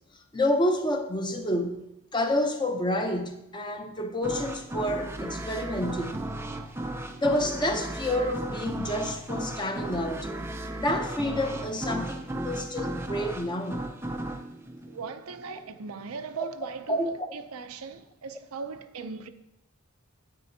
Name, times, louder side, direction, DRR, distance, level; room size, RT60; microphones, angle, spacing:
voice 1, 0.3-1.8 2.1-6.3 7.2-10.3 10.8-13.9 16.4-16.5 16.9-17.1, left 1 dB, 20° left, 0.8 m, -29 dB
sound 1, 4.2-15.7, right 1 dB, 10° right, 0.4 m, -35 dB
voice 2, 14.9-19.3, right 5 dB, 85° right, 0.6 m, -39 dB
9.1 x 8.8 x 2.8 m
head